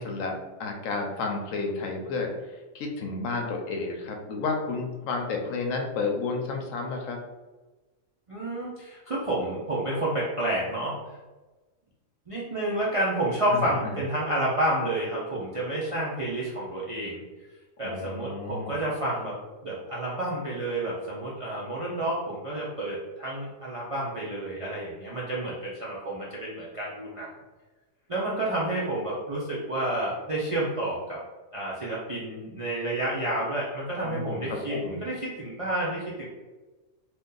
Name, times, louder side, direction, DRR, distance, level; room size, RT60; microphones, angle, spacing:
voice 1, 0.0-2.3 2.7-7.2 13.5-13.7 17.8-18.9 34.0-35.0, left 3 dB, 80° left, 2 dB, 1.0 m, -31 dB
voice 2, 8.3-10.9 12.3-17.2 17.8-19.3 19.6-27.3 28.1-31.2 31.5-36.3, right 1 dB, 50° right, -7 dB, 0.4 m, -30 dB
2.7 x 2.5 x 3.7 m, 1.2 s
omnidirectional pair, 1.4 m